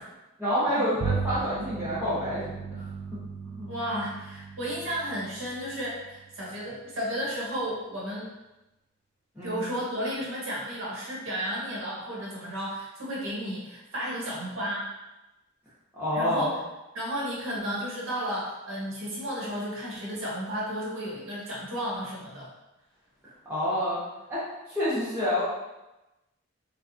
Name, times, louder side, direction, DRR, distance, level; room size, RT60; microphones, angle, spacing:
voice 1, 0.4-2.8 3.4-3.7 9.3-9.6 15.9-16.5 23.4-24.0 24.3-25.4, left 1 dB, 10° right, -12 dB, 0.8 m, -28 dB
Bowed string instrument, 1.0-6.6, right 4 dB, 50° right, 0.4 m, -36 dB
voice 2, 3.7-8.3 9.4-14.9 16.1-16.6 16.9-22.5, equal, 70° right, -5 dB, 1.2 m, -33 dB
4.4 x 2.3 x 2.8 m, 1.0 s
head